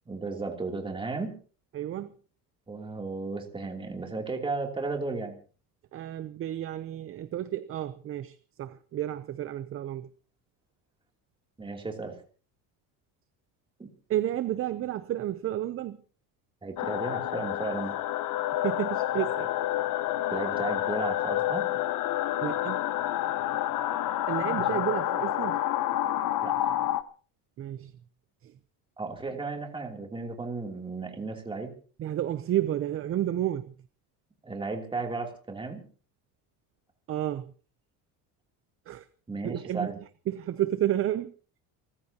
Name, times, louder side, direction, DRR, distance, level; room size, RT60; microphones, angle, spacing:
voice 1, 0.1-1.4 2.7-5.4 11.6-12.2 13.8-13.9 16.6-17.9 20.3-21.7 24.4-24.8 26.4-26.7 29.0-31.7 34.4-35.8 39.3-40.0, right 3 dB, 15° right, 3.0 m, -34 dB
voice 2, 1.7-2.1 5.9-10.1 14.1-16.0 18.6-19.5 22.4-22.8 24.3-25.6 27.6-27.9 28.4-28.5 32.0-33.7 37.1-37.5 38.9-39.1 39.4-39.9 40.3-41.3, right 12 dB, 35° right, 0.7 m, -31 dB
sound 1, 16.8-27.0, left 13 dB, 55° left, 1.0 m, -29 dB
29.5 x 14.5 x 2.9 m
cardioid pair, 155°, 39 cm